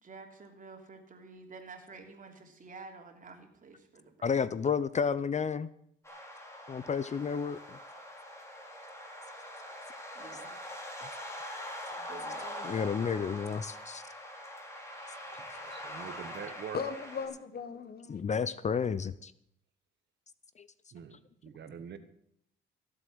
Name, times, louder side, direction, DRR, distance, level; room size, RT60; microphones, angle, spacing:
voice 1, 0.0-4.4 10.1-10.6 12.0-13.0, right 4 dB, 40° right, 3 dB, 3.2 m, -50 dB
voice 2, 4.2-5.7 6.7-7.8 12.6-14.0 18.1-19.3 20.6-20.7, left 6 dB, 35° left, 16 dB, 0.6 m, -31 dB
sound 1, 6.0-17.3, left 1 dB, 15° left, 4.6 m, -43 dB
voice 3, 15.5-16.8 20.9-22.0, right 8 dB, 60° right, 10 dB, 1.5 m, -44 dB
voice 4, 16.7-18.2, left 5 dB, 50° left, 12 dB, 1.3 m, -38 dB
16.0 x 7.7 x 7.9 m, 0.72 s
cardioid pair, 90°, 20 cm